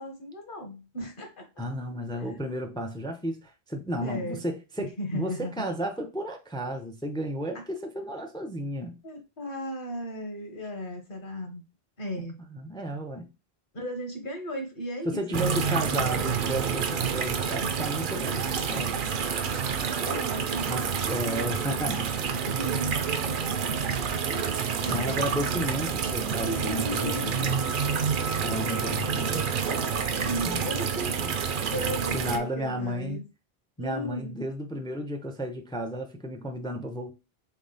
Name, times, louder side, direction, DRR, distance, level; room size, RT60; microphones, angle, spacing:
voice 1, 0.0-1.5 2.2-2.3 4.0-4.4 4.8-5.5 7.5-7.7 9.0-11.6 12.0-12.4 13.7-16.4 20.1-21.1 22.5-23.5 24.3-25.3 26.4-27.7 30.2-31.2 31.7-33.2 33.8-34.4, equal, 55° left, 1.3 m, -36 dB
voice 2, 1.6-9.0 12.2-12.3 12.5-13.3 15.1-19.0 20.7-22.1 24.9-27.6 28.3-29.5 30.4-30.6 31.2-31.3 32.1-33.2 33.8-37.1, equal, 5° left, 0.4 m, -33 dB
sound 1, 15.3-32.4, right 6 dB, 60° right, 0.7 m, -28 dB
3.7 x 3.6 x 3.9 m
omnidirectional pair, 1.1 m